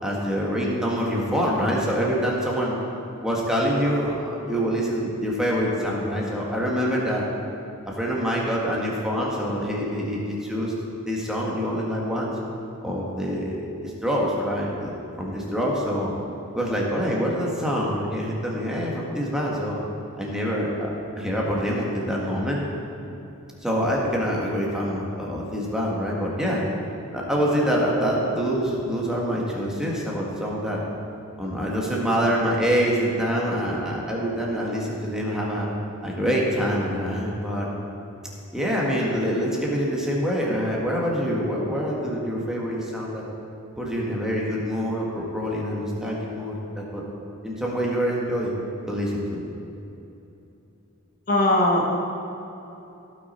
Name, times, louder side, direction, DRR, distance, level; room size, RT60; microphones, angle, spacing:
voice 1, 0.0-2.8 3.2-7.3 8.0-10.7 11.1-12.3 12.8-13.6 13.8-14.9 15.2-16.1 16.5-19.8 20.2-20.9 21.2-22.6 23.6-26.6 27.1-30.8 31.4-35.7 36.0-37.7 38.5-43.2 43.8-47.0 47.4-48.5 48.9-49.4, equal, 5° right, -4 dB, 1.6 m, -25 dB
voice 2, 51.3-52.0, left 1 dB, 40° left, -1 dB, 1.1 m, -20 dB
16.5 x 6.2 x 4.4 m, 3.0 s
head